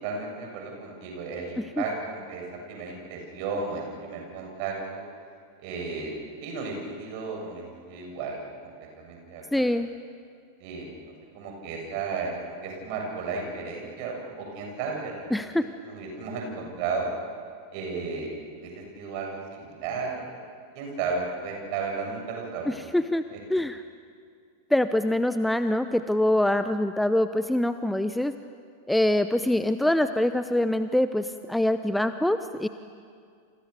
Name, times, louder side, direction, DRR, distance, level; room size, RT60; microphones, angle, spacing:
voice 1, 0.0-5.0 5.6-9.6 10.6-10.9 11.3-15.5 15.8-17.1 17.7-20.4 20.7-22.8 23.3-23.4, right 4 dB, 45° right, 1 dB, 7.3 m, -34 dB
voice 2, 9.5-9.9 15.3-15.7 22.7-23.2 23.5-23.8 24.7-28.3 28.9-32.7, left 1 dB, 5° left, 11 dB, 0.8 m, -24 dB
29.5 x 28.0 x 7.0 m, 2.3 s
figure-of-eight pair, 90°, 0 cm